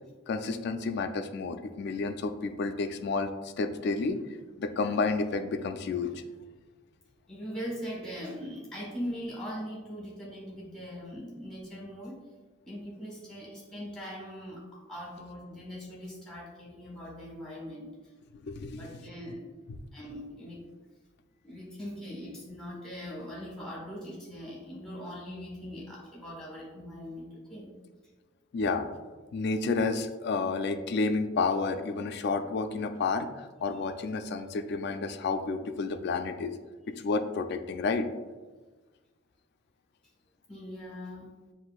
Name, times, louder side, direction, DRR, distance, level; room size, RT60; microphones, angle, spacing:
voice 1, 0.3-4.2 4.6-6.2 18.4-19.0 28.5-28.9 29.3-36.5 37.0-38.1, left 4 dB, 55° left, 8 dB, 0.3 m, -30 dB
voice 2, 7.3-12.2 12.6-17.9 18.7-19.4 19.9-20.7 21.4-27.7 33.7-33.8 40.5-41.3, equal, 5° left, -4 dB, 1.2 m, -41 dB
7.5 x 2.5 x 2.3 m, 1.3 s
head